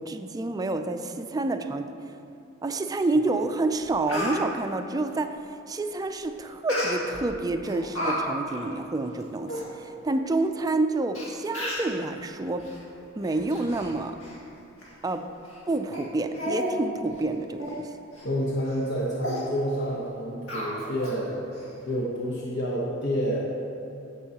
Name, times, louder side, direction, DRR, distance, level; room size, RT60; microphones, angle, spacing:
voice 1, 0.0-1.9 2.6-12.7 13.2-14.2 15.0-15.3 15.7-17.9, right 2 dB, 20° right, 8 dB, 0.4 m, -28 dB
Speech, 3.4-3.5 3.8-4.4 6.7-7.2 7.6-8.2 8.5-8.6 9.2-9.3 9.5-9.6 10.4-10.5 11.1-11.2 11.5-11.9 12.6-12.8 13.2-13.9 14.2-14.4 14.8-14.9 15.4-15.6 15.9-16.0 16.3-16.7 17.1-17.2 17.6-17.8 18.1-18.3 18.7-18.8 19.2-19.4 20.5-21.1 21.5-21.6, equal, 80° left, 2.2 m, -32 dB
voice 2, 18.2-21.5 21.9-23.4, equal, 60° left, -5 dB, 1.0 m, -29 dB
16.0 x 5.4 x 2.9 m, 2.7 s
head